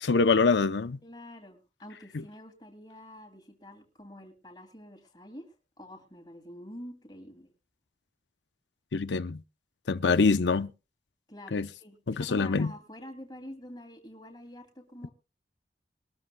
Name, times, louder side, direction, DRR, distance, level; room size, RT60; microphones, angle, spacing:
voice 1, 0.0-1.0 8.9-9.4 9.9-10.7 11.5-11.7 12.1-12.7, left 4 dB, 90° left, 0.7 m, -24 dB
voice 2, 1.0-7.5 11.3-15.1, equal, 25° left, 2.6 m, -47 dB
22.0 x 13.0 x 2.3 m
head